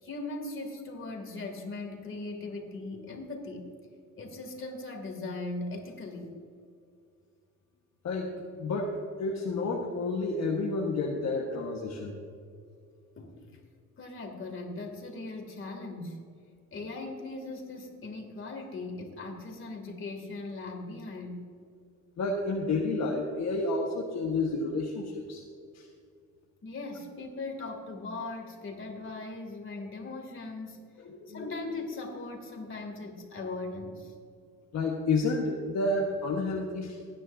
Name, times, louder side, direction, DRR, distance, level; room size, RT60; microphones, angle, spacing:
voice 1, 0.0-3.7 4.2-6.3 13.2-13.6 14.0-16.3 16.7-21.5 26.6-30.8 31.3-34.1, left 2 dB, 40° left, 3 dB, 2.6 m, -39 dB
voice 2, 8.0-12.2 22.2-25.4 25.7-25.8 31.0-31.4 34.7-37.0, left 3 dB, 60° left, -1 dB, 1.4 m, -30 dB
19.0 x 9.9 x 2.7 m, 2.4 s
cardioid pair, 105°, 30 cm